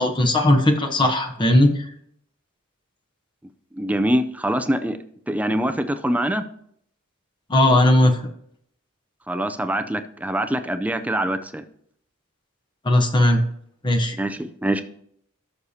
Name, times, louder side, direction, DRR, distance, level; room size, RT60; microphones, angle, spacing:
voice 1, 0.0-1.8 7.5-8.3 12.8-13.4 13.8-14.2, left 1 dB, 20° left, 3 dB, 1.0 m, -18 dB
voice 2, 3.8-5.0 5.3-6.4 9.3-11.6 14.2-14.8, right 1 dB, 5° right, 9 dB, 0.5 m, -24 dB
17.5 x 6.6 x 2.8 m, 0.68 s
head